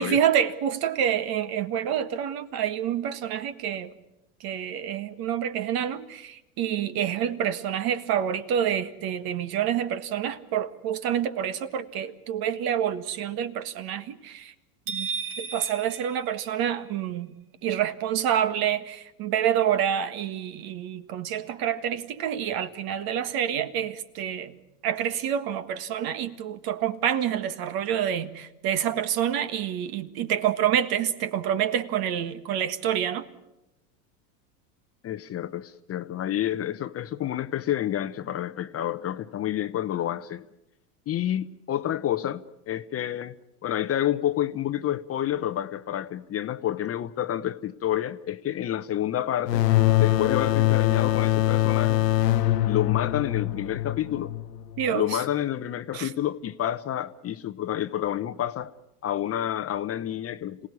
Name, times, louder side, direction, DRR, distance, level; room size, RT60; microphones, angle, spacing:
voice 1, 0.0-3.9 4.4-14.5 14.9-15.1 15.4-17.3 17.6-24.5 24.8-33.2 54.8-55.2 55.9-56.1, right 9 dB, 50° right, 1.7 m, -27 dB
sound 1, 14.9-17.0, right 5 dB, 70° right, 3.6 m, -35 dB
voice 2, 35.0-40.5 41.1-43.3 43.6-49.6 50.0-52.0 52.7-54.3 54.9-58.7 59.0-60.7, left 11 dB, 30° left, 0.9 m, -29 dB
sound 2, 49.5-54.9, left 14 dB, 90° left, 0.9 m, -23 dB
27.0 x 18.0 x 9.6 m
hypercardioid pair, 100°, 47 cm